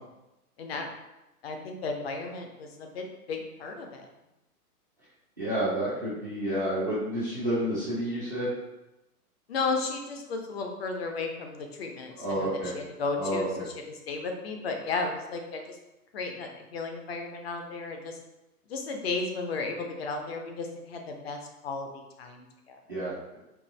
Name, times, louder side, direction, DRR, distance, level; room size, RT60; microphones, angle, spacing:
voice 1, 0.6-0.9 1.4-4.0 9.5-13.7 14.1-15.8 16.1-18.2 18.7-22.8, left 3 dB, 40° left, 3 dB, 0.5 m, -34 dB
voice 2, 5.4-8.5 12.2-12.7 13.2-13.7 22.9-23.4, right 1 dB, 15° right, -13 dB, 0.3 m, -30 dB
4.4 x 2.4 x 3.1 m, 0.95 s
hypercardioid pair, 135°, 47 cm